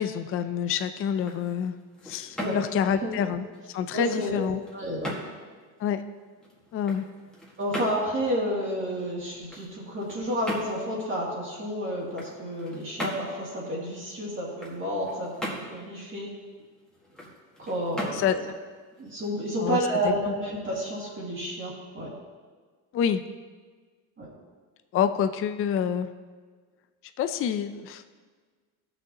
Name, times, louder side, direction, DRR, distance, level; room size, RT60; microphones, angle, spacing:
voice 1, 0.0-1.8 2.0-4.6 5.8-6.0 6.7-7.1 18.1-18.5 19.6-19.8 20.0-20.3 22.9-23.2 24.9-26.1 27.2-28.0, left 8 dB, 35° left, 9 dB, 0.4 m, -27 dB
sound 1, 1.1-19.9, equal, ahead, 1.6 m, -41 dB
voice 2, 3.9-5.2 7.6-16.3 17.6-18.3 19.0-22.2 24.2-24.3, equal, 30° right, -5 dB, 2.1 m, -30 dB
15.5 x 6.3 x 2.9 m, 1.5 s
cardioid pair, 130°, 40 cm